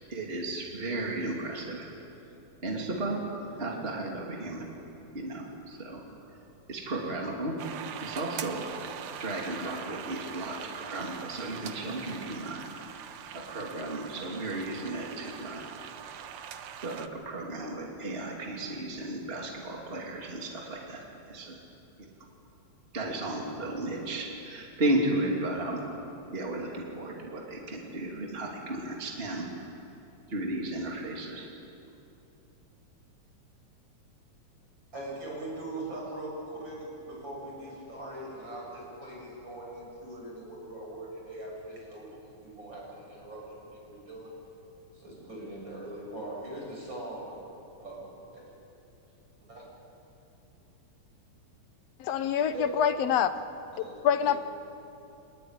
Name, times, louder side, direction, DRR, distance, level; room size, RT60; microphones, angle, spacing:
voice 1, 0.1-1.9 2.6-3.2 3.6-4.7 5.1-6.0 6.7-7.6 8.0-8.7 9.2-12.6 13.3-15.7 16.8-21.6 22.0-22.1 22.9-25.8 26.3-29.5 30.3-31.5, right 1 dB, 20° right, -1 dB, 3.0 m, -34 dB
sound 1, 7.6-17.1, right 9 dB, 80° right, 2.4 m, -42 dB
voice 2, 34.9-44.3 44.9-47.4 47.8-48.0 48.3-48.4 49.5-49.6 52.5-52.7 53.7-54.4, right 1 dB, 40° right, -3 dB, 7.9 m, -41 dB
voice 3, 52.0-53.3 53.8-54.4, left 8 dB, 70° left, 11 dB, 1.8 m, -26 dB
26.0 x 20.5 x 9.9 m, 2.9 s
omnidirectional pair, 3.3 m